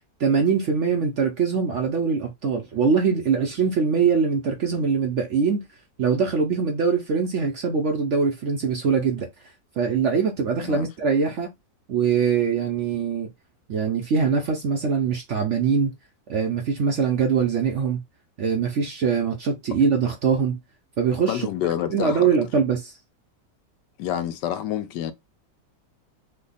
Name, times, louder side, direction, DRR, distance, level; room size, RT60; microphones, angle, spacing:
voice 1, 0.2-5.6 6.0-9.3 9.8-11.5 11.9-13.3 13.7-15.9 16.3-18.0 18.4-20.6 21.0-21.5 21.9-23.0, right 6 dB, 65° right, 0.7 m, -23 dB
voice 2, 21.3-22.3 24.0-25.1, left 11 dB, 90° left, 1.2 m, -28 dB
3.2 x 2.2 x 3.9 m
omnidirectional pair, 1.8 m